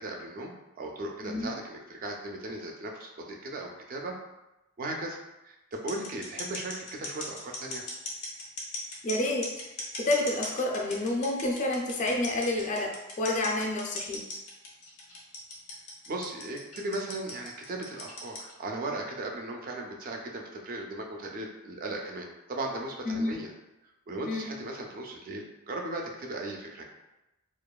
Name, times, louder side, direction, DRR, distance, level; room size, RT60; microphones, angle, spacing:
voice 1, 0.0-4.2 4.8-5.2 5.4-7.8 16.1-23.5 24.1-26.9, right 2 dB, 40° right, 1 dB, 0.3 m, -37 dB
voice 2, 1.2-1.5 9.0-9.5 10.0-14.2 23.1-23.4 24.3-24.5, left 2 dB, 35° left, 1 dB, 0.4 m, -29 dB
sound 1, 5.7-18.5, left 2 dB, 80° left, 0.6 m, -38 dB
2.8 x 2.3 x 2.2 m, 0.96 s
head